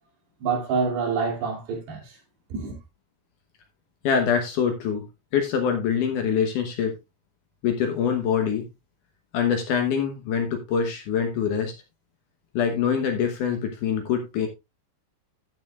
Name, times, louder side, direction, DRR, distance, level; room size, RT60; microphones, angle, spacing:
voice 1, 0.4-2.2 2.5-2.8, right 5 dB, 70° right, 4.8 m, -27 dB
voice 2, 4.0-5.0 5.3-7.0 7.6-8.6 9.3-11.7 12.5-14.5, left 7 dB, 70° left, 1.9 m, -24 dB
14.0 x 8.0 x 2.4 m
omnidirectional pair, 5.1 m